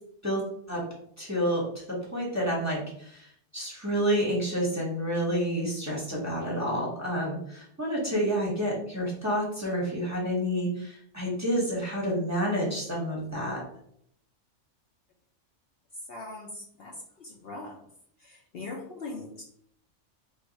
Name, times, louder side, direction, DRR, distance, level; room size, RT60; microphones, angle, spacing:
voice 1, 1.2-1.6 2.1-3.3 3.5-13.6, equal, 15° right, -4 dB, 0.9 m, -29 dB
voice 2, 16.1-17.8 18.2-19.4, left 2 dB, 60° left, 0 dB, 0.7 m, -41 dB
2.7 x 2.3 x 3.9 m, 0.68 s
omnidirectional pair, 1.2 m